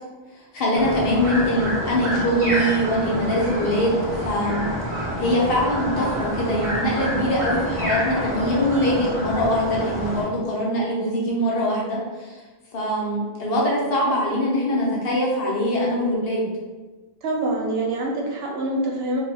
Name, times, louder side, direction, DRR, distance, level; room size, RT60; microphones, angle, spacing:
voice 1, 0.5-4.6 4.9-12.4 12.7-16.4, equal, 65° left, -3 dB, 0.9 m, -23 dB
sound 1, 0.7-10.2, equal, 35° right, 0.8 m, -28 dB
voice 2, 17.2-19.2, right 1 dB, 75° right, -1 dB, 0.8 m, -25 dB
2.3 x 2.2 x 3.2 m, 1.3 s
omnidirectional pair, 1.1 m